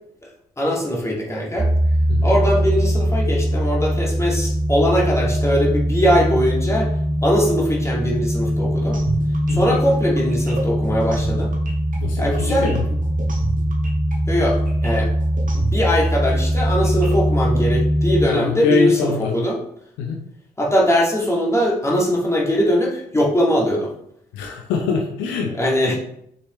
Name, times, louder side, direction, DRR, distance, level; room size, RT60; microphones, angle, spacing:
voice 1, 0.6-1.7 2.2-6.9 7.2-9.0 9.5-11.5 12.2-12.7 14.3-14.6 14.8-15.1 15.5-19.6 20.6-23.9 25.6-26.0, equal, 15° left, -3 dB, 2.3 m, -21 dB
sound 1, 1.6-18.3, equal, 10° right, 0.6 m, -21 dB
sound 2, 8.9-17.6, right 3 dB, 40° right, 1.5 m, -32 dB
voice 2, 12.0-12.8 18.3-19.3 20.0-20.2 24.3-25.5, left 4 dB, 65° left, 2 dB, 0.8 m, -23 dB
6.4 x 5.5 x 3.2 m, 0.74 s
figure-of-eight pair, 40°, 21 cm